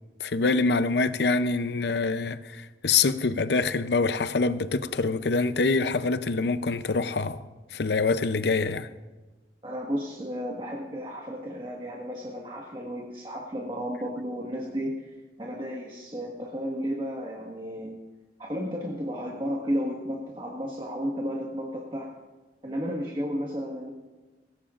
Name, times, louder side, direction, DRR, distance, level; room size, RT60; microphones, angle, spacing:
voice 1, 0.2-7.4 7.7-8.9, left 4 dB, 65° left, 0.6 m, -25 dB
voice 2, 9.6-17.9 18.4-22.1 22.6-23.9, equal, 25° right, 1.5 m, -33 dB
19.0 x 17.0 x 2.5 m
head